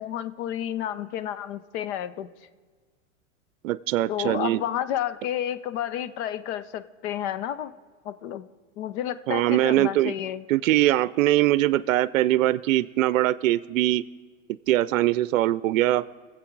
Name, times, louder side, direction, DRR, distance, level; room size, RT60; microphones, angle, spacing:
voice 1, 0.0-2.3 4.1-7.7 8.0-8.5 8.8-10.4, left 11 dB, 60° left, 14 dB, 0.8 m, -31 dB
voice 2, 3.6-4.6 9.3-10.1 10.5-14.0 14.7-16.0, right 15 dB, 80° right, 18 dB, 0.5 m, -22 dB
22.5 x 7.8 x 4.6 m, 1.5 s
hypercardioid pair, 120°, 39 cm